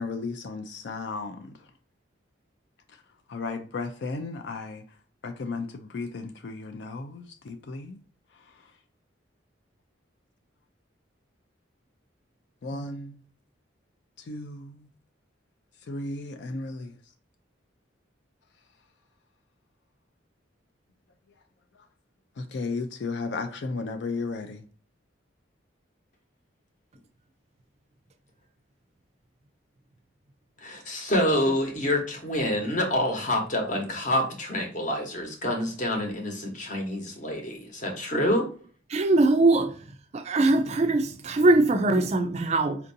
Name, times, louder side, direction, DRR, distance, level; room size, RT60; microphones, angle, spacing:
voice 1, 0.0-1.5 3.3-4.8 5.2-8.0 12.6-13.2 14.3-14.9 15.9-16.9 22.4-24.6, left 3 dB, 60° left, 0.4 m, -34 dB
voice 2, 30.6-38.5, left 1 dB, 40° left, 0.9 m, -27 dB
voice 3, 38.9-39.7 40.1-42.8, right 2 dB, 35° right, 0.3 m, -21 dB
4.3 x 2.6 x 2.6 m
head